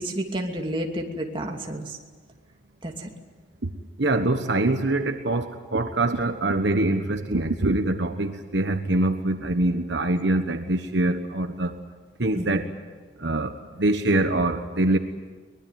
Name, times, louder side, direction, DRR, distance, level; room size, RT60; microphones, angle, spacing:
voice 1, 0.0-2.0 2.8-3.1 12.3-12.6, right 1 dB, 25° right, 1 dB, 2.7 m, -30 dB
voice 2, 4.0-11.8 12.2-12.6 13.2-15.0, right 2 dB, 65° right, 7 dB, 1.3 m, -24 dB
23.5 x 21.0 x 9.4 m, 1.4 s
head